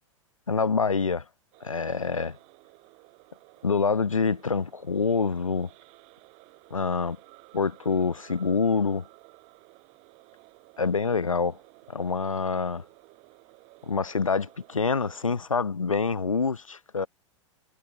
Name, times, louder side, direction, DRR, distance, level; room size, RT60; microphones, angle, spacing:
voice 1, 0.5-1.2 1.6-2.4 3.6-5.7 6.7-7.2 7.5-9.1 10.8-11.6 11.9-12.8 13.8-17.1, left 5 dB, 85° left, 1.1 m, -26 dB
sound 1, 1.5-15.4, right 28 dB, 40° right, 7.3 m, -55 dB
figure-of-eight pair, 95°, 17 cm